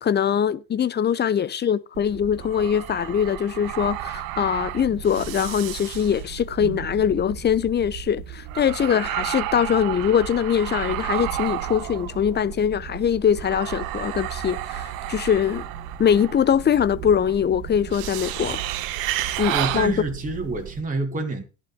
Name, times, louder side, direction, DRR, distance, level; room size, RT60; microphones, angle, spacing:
voice 1, 0.0-15.6 16.0-18.6 19.4-20.0, left 8 dB, 25° left, 0.7 m, -22 dB
sound 1, 1.9-20.8, right 12 dB, 55° right, 1.2 m, -32 dB
voice 2, 19.1-21.4, right 3 dB, 20° right, 2.4 m, -28 dB
17.0 x 11.0 x 2.3 m
figure-of-eight pair, 65°, 41 cm